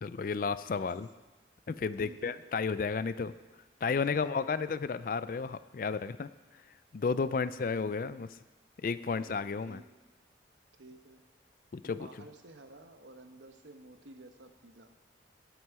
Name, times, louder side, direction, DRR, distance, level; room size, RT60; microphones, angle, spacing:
voice 1, 0.0-1.1 1.7-3.3 3.8-6.3 6.9-8.3 8.8-9.8 11.7-12.1, left 5 dB, 50° left, 14 dB, 0.4 m, -32 dB
voice 2, 2.0-2.4 4.1-4.5 7.3-7.4 9.1-9.8 10.8-11.2 11.8-14.9, right 2 dB, 85° right, 6 dB, 1.1 m, -53 dB
18.5 x 6.2 x 4.7 m, 1.2 s
head